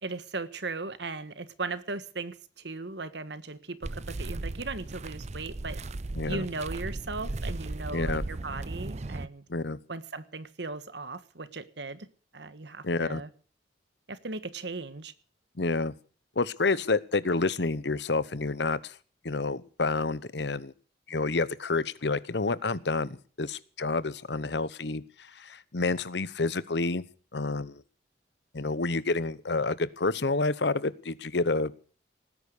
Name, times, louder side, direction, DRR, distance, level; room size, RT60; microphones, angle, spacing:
voice 1, 0.0-5.8 6.3-9.4 9.9-12.1 12.3-13.3 14.1-15.1, right 3 dB, 65° right, 14 dB, 1.4 m, -37 dB
sound 1, 3.8-9.3, right 2 dB, 40° right, 0.6 m, -36 dB
voice 2, 6.1-6.5 7.9-8.2 9.5-9.8 12.8-13.2 15.6-15.9 16.4-18.9 19.2-20.7 21.1-27.0 27.3-27.8 28.5-31.7, left 3 dB, 65° left, 18 dB, 1.0 m, -29 dB
19.0 x 10.0 x 6.6 m, 0.41 s
head